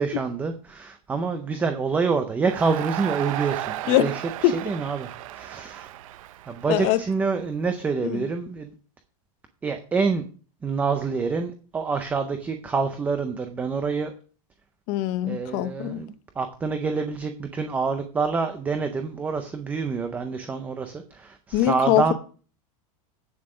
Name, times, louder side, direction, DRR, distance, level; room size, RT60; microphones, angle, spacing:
voice 1, 0.0-5.9 6.5-8.7 9.6-10.2 10.6-14.1 15.3-22.1, right 4 dB, 10° right, 0.5 m, -27 dB
Crowd, 2.5-7.7, right 14 dB, 65° right, 0.6 m, -35 dB
voice 2, 6.7-7.0 8.0-8.2 14.9-16.0 21.5-22.1, left 14 dB, 35° left, 0.6 m, -22 dB
8.7 x 7.3 x 4.9 m
supercardioid pair, 170°, 19 cm